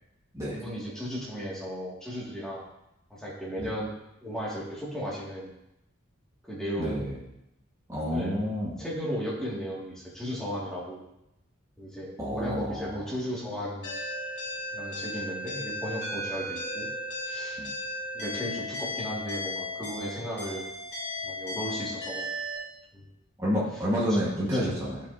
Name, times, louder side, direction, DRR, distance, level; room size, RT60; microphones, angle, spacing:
voice 1, 0.5-2.6 3.1-3.9 4.2-5.5 6.5-7.1 8.1-8.4 8.8-11.0 11.8-13.9 14.7-16.9 17.3-17.6 18.1-20.6 21.2-22.3 22.9-23.1 24.1-24.2 24.5-24.8, equal, 5° left, -7 dB, 1.9 m, -35 dB
voice 2, 6.8-7.1 7.9-8.8 12.2-13.0 17.6-17.7 23.4-25.0, equal, 15° right, -7 dB, 1.4 m, -29 dB
sound 1, 13.8-22.6, left 1 dB, 55° left, 2.7 m, -35 dB
11.5 x 5.2 x 2.7 m, 0.87 s
head